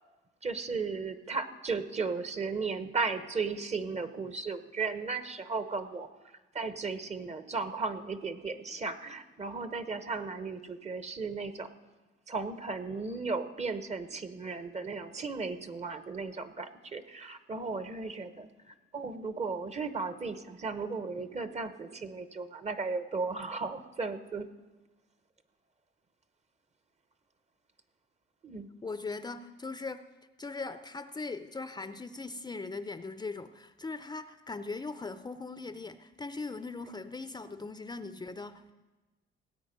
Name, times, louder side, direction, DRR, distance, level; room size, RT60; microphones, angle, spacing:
voice 1, 0.4-6.1 6.5-11.7 12.3-24.5 28.4-28.7, right 4 dB, 35° right, 11 dB, 0.9 m, -35 dB
voice 2, 28.8-30.0 30.4-38.7, left 3 dB, 20° left, 10 dB, 0.5 m, -40 dB
18.0 x 8.5 x 5.2 m, 1.2 s
cardioid pair, 90°, 20 cm